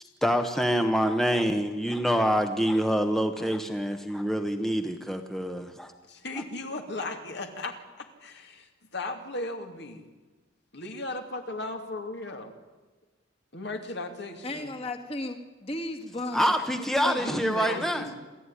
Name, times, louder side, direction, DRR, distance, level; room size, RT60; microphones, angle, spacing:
voice 1, 0.2-5.9 16.3-18.1, equal, ahead, 6 dB, 1.0 m, -26 dB
voice 2, 6.1-10.1 10.7-12.5 13.5-14.7 17.2-18.1, left 2 dB, 60° left, 5 dB, 2.6 m, -36 dB
voice 3, 14.4-16.5 17.0-17.2, left 1 dB, 30° left, 4 dB, 2.2 m, -34 dB
27.0 x 14.0 x 9.9 m, 1.3 s
head